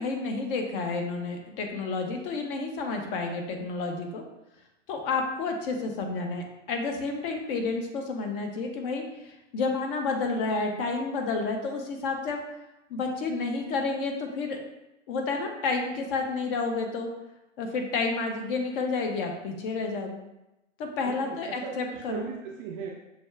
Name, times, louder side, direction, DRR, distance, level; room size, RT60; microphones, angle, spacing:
voice 1, 0.0-4.2 4.9-12.4 12.9-14.6 15.1-17.1 17.6-20.2 20.8-22.3, left 3 dB, 45° left, 3 dB, 0.9 m, -30 dB
voice 2, 21.1-22.9, right 6 dB, 25° right, -1 dB, 0.4 m, -38 dB
6.0 x 2.4 x 3.2 m, 0.93 s
hypercardioid pair, 115°, 38 cm